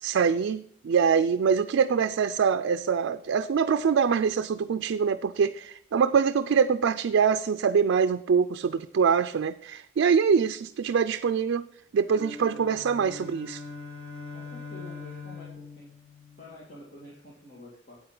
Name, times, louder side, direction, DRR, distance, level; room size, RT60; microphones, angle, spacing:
voice 1, 0.0-11.6 11.9-13.6, right 6 dB, 80° right, 10 dB, 0.4 m, -24 dB
sound 1, 12.0-16.7, left 4 dB, 80° left, 2.0 m, -42 dB
voice 2, 14.3-15.9 16.4-18.0, left 1 dB, 45° left, -5 dB, 2.1 m, -48 dB
8.7 x 8.5 x 3.9 m, 0.65 s
head